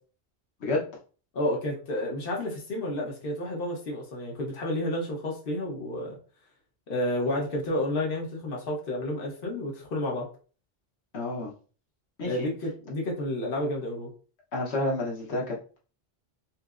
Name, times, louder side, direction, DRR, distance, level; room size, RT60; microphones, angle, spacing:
voice 1, 1.3-6.2 6.9-10.3 12.2-14.1, left 1 dB, 60° left, -1 dB, 1.1 m, -30 dB
voice 2, 11.1-11.5 12.2-12.5 14.5-15.8, left 2 dB, 90° left, -3 dB, 1.2 m, -30 dB
5.6 x 2.0 x 2.4 m, 0.38 s
omnidirectional pair, 1.1 m